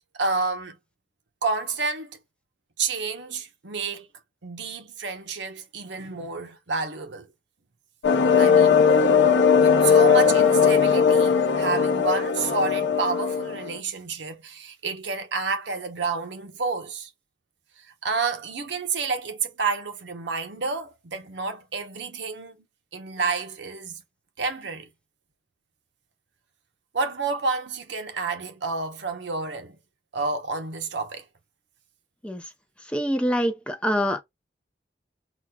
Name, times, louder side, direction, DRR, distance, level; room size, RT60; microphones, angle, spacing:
voice 1, 0.2-0.8 1.4-2.2 2.8-4.1 4.4-7.3 8.4-8.8 9.6-17.1 18.0-22.6 22.9-24.0 24.4-24.9 26.9-29.8 30.1-31.2, right 4 dB, 80° right, 0.8 m, -29 dB
sound 1, 8.0-13.8, left 6 dB, 80° left, 0.6 m, -19 dB
voice 2, 32.9-34.2, equal, 5° left, 0.5 m, -25 dB
6.0 x 2.3 x 2.3 m
head